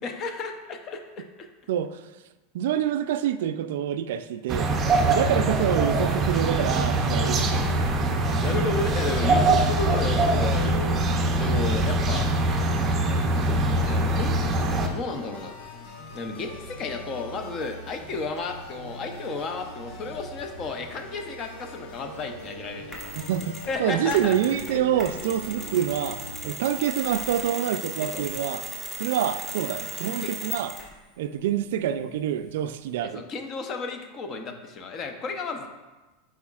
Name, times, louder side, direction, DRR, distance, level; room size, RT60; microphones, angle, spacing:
voice 1, 0.0-1.5 8.4-12.3 13.8-15.5 16.1-23.0 23.7-24.4 24.7-25.0 28.1-28.3 30.2-30.3 33.0-35.7, left 3 dB, 30° left, 5 dB, 0.6 m, -33 dB
voice 2, 1.7-2.0 2.5-4.7 5.1-7.8 23.3-28.6 29.0-30.7 31.2-33.2, right 10 dB, 75° right, 11 dB, 0.3 m, -27 dB
sound 1, 4.5-14.9, right 2 dB, 25° right, 0.5 m, -23 dB
sound 2, 7.6-26.4, left 1 dB, 65° left, 1.1 m, -42 dB
Mechanisms, 22.9-23.7 24.1-31.0, right 1 dB, 15° left, 1.0 m, -37 dB
8.4 x 4.7 x 2.4 m, 1.1 s
supercardioid pair, 150°, 0 cm